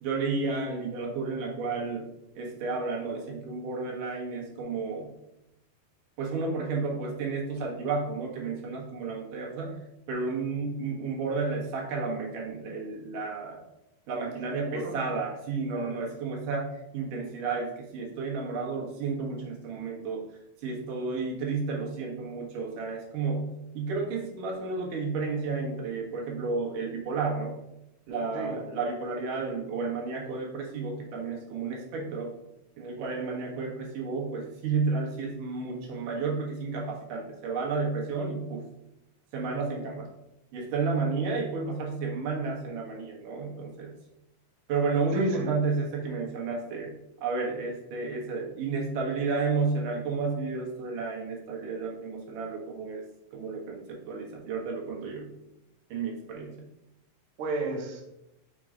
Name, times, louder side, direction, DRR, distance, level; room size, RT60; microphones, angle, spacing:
voice 1, 0.0-2.1 2.4-5.1 6.2-9.8 10.1-13.6 14.1-20.2 20.6-27.6 28.1-32.3 32.8-38.6 39.3-40.1 40.5-43.9 44.7-53.0 53.3-55.3 55.9-56.6, right 4 dB, 65° right, -1 dB, 2.6 m, -32 dB
voice 2, 14.5-14.9 15.7-15.9 28.3-28.6 45.1-45.5 57.4-58.0, right 2 dB, 90° right, 0 dB, 1.1 m, -32 dB
6.0 x 3.8 x 5.0 m, 0.86 s
omnidirectional pair, 4.2 m